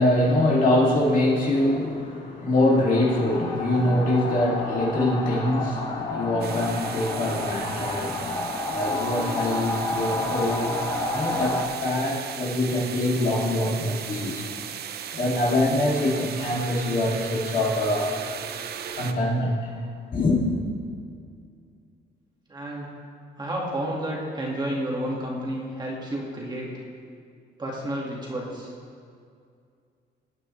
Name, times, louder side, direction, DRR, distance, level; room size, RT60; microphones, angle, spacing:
voice 1, 0.0-14.5 15.1-18.2 18.9-19.7 20.1-20.4, left 1 dB, 45° left, -4 dB, 2.7 m, -24 dB
sound 1, 2.6-11.6, left 2 dB, 20° left, 1.4 m, -30 dB
sound 2, 6.4-19.1, right 8 dB, 60° right, 0.7 m, -37 dB
voice 2, 22.5-22.9 23.4-26.7 27.6-28.7, right 1 dB, 25° right, -3 dB, 2.0 m, -31 dB
18.5 x 9.6 x 3.3 m, 2.3 s
cardioid pair, 145°, 19 cm